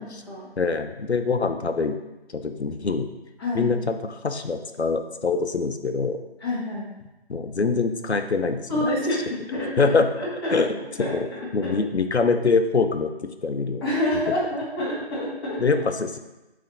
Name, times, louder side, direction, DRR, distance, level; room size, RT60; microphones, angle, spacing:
voice 1, 0.0-0.5 3.4-3.7 6.4-6.9 8.7-11.8 13.8-15.6, left 1 dB, 25° left, -6 dB, 1.6 m, -28 dB
voice 2, 0.6-2.0 2.3-3.1 3.5-6.2 7.3-8.7 9.8-10.1 10.5-11.3 11.5-13.1 13.4-13.8 15.6-16.2, left 4 dB, 85° left, 8 dB, 0.7 m, -24 dB
8.6 x 3.5 x 4.0 m, 1.0 s
figure-of-eight pair, 150°, 32 cm